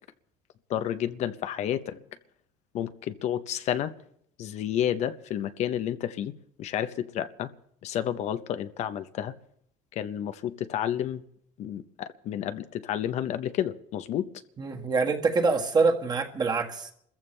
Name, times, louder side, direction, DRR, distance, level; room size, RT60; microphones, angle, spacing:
voice 1, 0.7-2.0 2.7-3.9 4.4-6.3 6.6-7.5 7.8-9.3 9.9-11.2 11.6-14.3, left 10 dB, 55° left, 11 dB, 0.8 m, -30 dB
voice 2, 14.6-16.9, right 4 dB, 30° right, 3 dB, 1.7 m, -25 dB
27.5 x 14.5 x 3.3 m, 0.68 s
cardioid pair, 115°, 14 cm